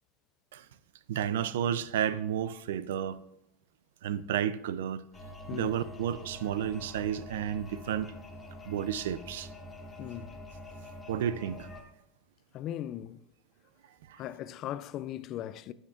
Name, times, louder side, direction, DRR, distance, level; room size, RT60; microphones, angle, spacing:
voice 1, 1.1-3.2 4.0-5.0 5.5-8.1 8.7-9.5 11.1-11.7 14.1-14.2, right 9 dB, 85° right, 0.4 m, -32 dB
sound 1, 5.1-11.8, equal, 15° left, 1.3 m, -46 dB
voice 2, 10.0-10.4 12.5-13.2 14.2-15.7, left 12 dB, 45° left, 0.4 m, -38 dB
13.0 x 6.4 x 2.5 m
supercardioid pair, 125°, 0 cm